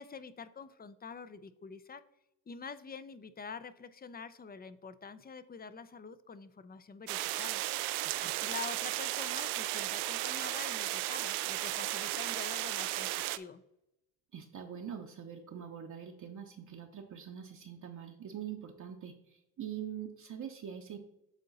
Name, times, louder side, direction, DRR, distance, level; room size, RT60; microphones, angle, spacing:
voice 1, 0.0-2.0 2.5-7.6 8.2-13.6, left 5 dB, 20° left, 14 dB, 0.5 m, -46 dB
sound 1, 7.1-13.4, right 16 dB, 70° right, 0.5 m, -35 dB
voice 2, 14.3-21.0, right 9 dB, 45° right, 1 dB, 0.9 m, -44 dB
8.3 x 3.7 x 4.0 m, 0.85 s
hypercardioid pair, 60°, 43 cm